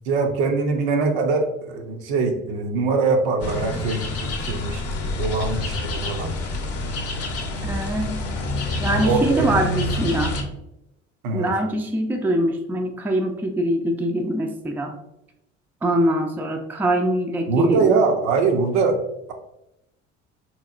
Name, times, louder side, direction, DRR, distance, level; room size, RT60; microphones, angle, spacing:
voice 1, 0.1-6.4 8.9-9.5 11.2-11.5 17.5-19.0, right 4 dB, 65° right, 4 dB, 0.6 m, -23 dB
sound 1, 3.4-10.4, left 2 dB, 40° left, 0.7 m, -27 dB
voice 2, 7.6-8.1 8.8-10.3 11.3-15.0 15.8-18.0, right 1 dB, 5° right, 3 dB, 0.4 m, -23 dB
3.5 x 3.0 x 2.4 m, 0.87 s
figure-of-eight pair, 55°, 36 cm